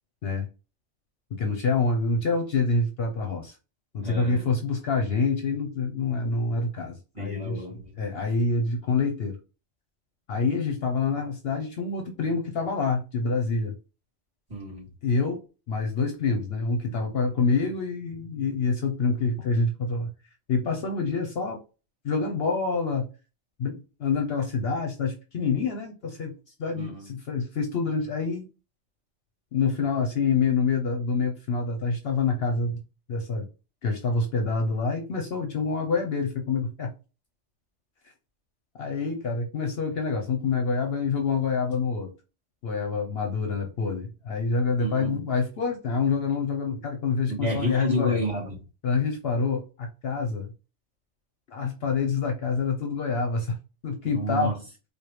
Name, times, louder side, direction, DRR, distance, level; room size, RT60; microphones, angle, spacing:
voice 1, 1.3-3.5 3.9-7.6 8.0-9.4 10.3-13.7 15.0-15.4 15.7-20.1 20.5-21.6 22.0-23.1 23.6-26.3 26.6-28.5 29.5-32.8 33.1-33.5 33.8-36.9 38.8-42.1 42.6-48.2 48.8-50.5 51.5-53.6 53.8-54.5, left 4 dB, 60° left, 0.8 m, -27 dB
voice 2, 4.0-4.5 7.1-7.9 14.5-14.9 26.7-27.1 44.8-45.2 47.3-48.6 54.0-54.6, equal, 35° right, 2.5 m, -30 dB
4.8 x 2.4 x 3.0 m
omnidirectional pair, 1.2 m